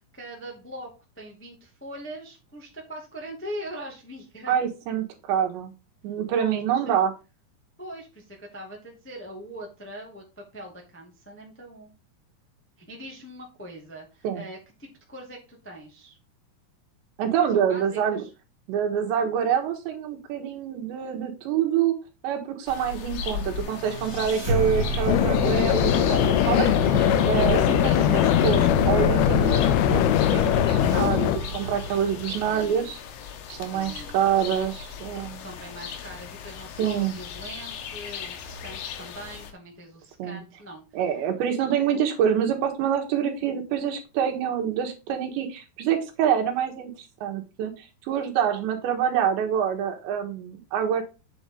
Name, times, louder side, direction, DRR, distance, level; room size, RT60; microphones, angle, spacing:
voice 1, 0.1-0.9 1.1-4.5 6.3-7.0 7.8-11.9 12.8-16.2 17.5-18.3 27.8-28.0 32.5-32.9 33.6-34.2 35.4-41.0, right 1 dB, 10° left, 0 dB, 0.6 m, -41 dB
voice 2, 4.5-5.7 6.0-7.1 14.2-14.4 17.2-18.2 18.7-22.0 22.2-26.7 27.3-30.0 30.3-31.3 31.5-33.0 33.5-35.5 36.8-37.2 40.2-40.4 40.9-46.9 47.2-51.0, right 8 dB, 90° right, 3 dB, 3.8 m, -26 dB
sound 1, 22.7-39.5, left 6 dB, 75° left, 3.2 m, -37 dB
sound 2, 23.4-32.6, equal, 15° right, 3.0 m, -29 dB
sound 3, 25.1-31.4, left 14 dB, 90° left, 2.1 m, -21 dB
8.7 x 7.2 x 3.9 m, 0.29 s
omnidirectional pair, 5.0 m